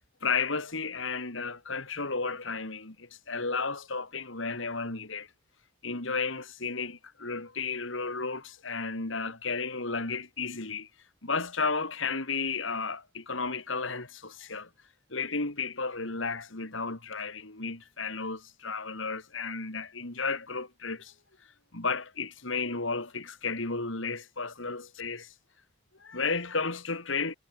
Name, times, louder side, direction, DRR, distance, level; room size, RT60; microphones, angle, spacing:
voice 1, 0.2-5.3 5.8-10.9 11.2-14.7 15.1-21.1 21.7-25.3 26.0-27.3, left 4 dB, 75° left, 3.1 m, -33 dB
head